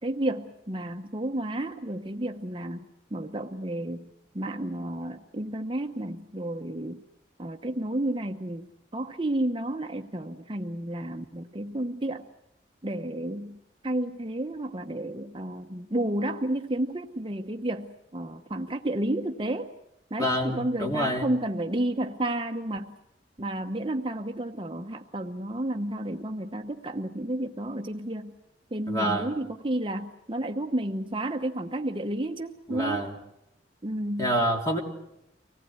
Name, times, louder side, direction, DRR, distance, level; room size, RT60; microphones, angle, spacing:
voice 1, 0.0-7.0 7.4-12.3 12.8-13.6 13.8-19.7 20.1-22.9 23.4-28.4 28.7-33.1 33.8-34.3, right 1 dB, 30° right, 4 dB, 0.9 m, -31 dB
voice 2, 20.2-21.3 28.9-29.3 32.7-33.1 34.2-34.8, equal, 20° left, 1 dB, 3.3 m, -27 dB
25.0 x 18.5 x 9.5 m, 0.84 s
head